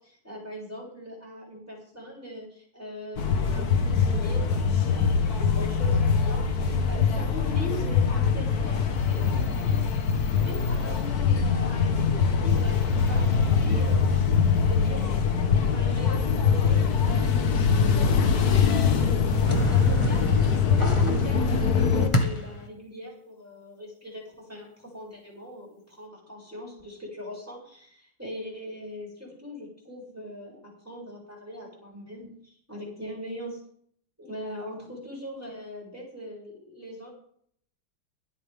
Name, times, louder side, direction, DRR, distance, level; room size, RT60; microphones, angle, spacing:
voice 1, 0.0-9.8 10.4-15.2 15.7-19.4 19.7-20.2 20.5-33.6 34.2-37.1, left 1 dB, 5° right, -4 dB, 7.5 m, -40 dB
sound 1, 3.2-22.1, left 6 dB, 50° left, 1.6 m, -23 dB
sound 2, 19.4-22.7, equal, 15° left, 1.5 m, -29 dB
24.0 x 8.8 x 3.8 m, 0.62 s
omnidirectional pair, 2.4 m